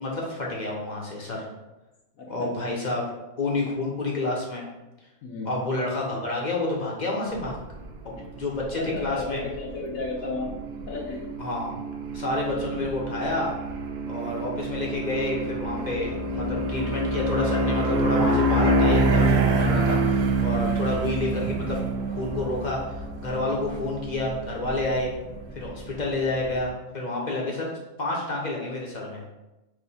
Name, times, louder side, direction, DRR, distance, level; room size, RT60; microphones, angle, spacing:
voice 1, 0.0-1.5 2.3-3.1 3.4-4.6 5.5-7.6 8.4-9.4 11.4-11.7 12.1-13.5 14.1-22.9 23.2-25.1 25.5-27.7 28.0-29.2, left 2 dB, 40° left, -2 dB, 0.7 m, -29 dB
voice 2, 2.2-2.5 5.2-5.6 8.2-8.3 8.8-10.5 10.8-11.4 12.5-12.9 14.0-14.3 16.3-16.5 20.7-20.8, left 3 dB, 65° left, -2 dB, 1.1 m, -35 dB
sound 1, 7.3-26.7, right 2 dB, 65° right, 0.6 m, -27 dB
4.7 x 2.6 x 4.1 m, 1.0 s
omnidirectional pair, 1.6 m